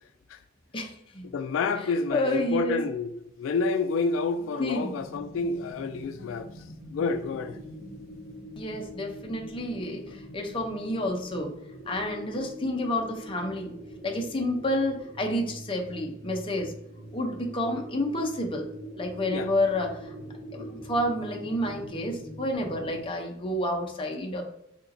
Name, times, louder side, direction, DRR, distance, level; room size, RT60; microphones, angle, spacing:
voice 1, 0.7-1.3 1.8-2.8 4.6-4.9 8.6-11.5 11.9-13.7 14.0-16.7 17.1-18.7 19.0-20.1 20.5-24.4, left 1 dB, 25° left, 0.6 m, -30 dB
voice 2, 1.2-6.5 6.9-7.6 19.3-19.5 20.6-20.7, left 4 dB, 85° left, 0.3 m, -29 dB
sound 1, 4.9-23.0, equal, 30° right, 0.7 m, -44 dB
4.2 x 2.9 x 2.5 m
head